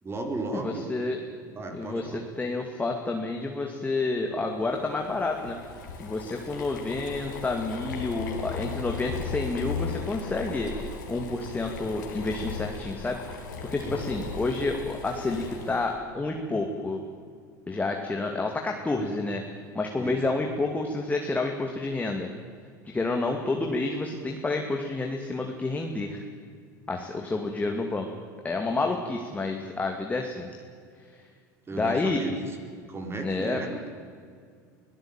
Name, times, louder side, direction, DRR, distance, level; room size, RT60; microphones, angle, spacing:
voice 1, 0.0-0.9 1.5-2.2 13.8-14.1 20.0-20.2 31.7-32.5 32.9-33.9, right 2 dB, 25° right, 4 dB, 4.4 m, -35 dB
voice 2, 0.5-1.2 1.7-5.6 6.0-17.0 17.7-19.4 19.7-22.3 22.8-26.2 26.9-28.1 28.4-30.5 31.7-32.2 33.2-33.6, left 3 dB, 15° left, 2 dB, 2.5 m, -29 dB
Boiling, 4.7-15.9, left 5 dB, 85° left, 4.0 m, -37 dB
23.5 x 18.0 x 9.1 m, 2.1 s
hypercardioid pair, 90°, 10 cm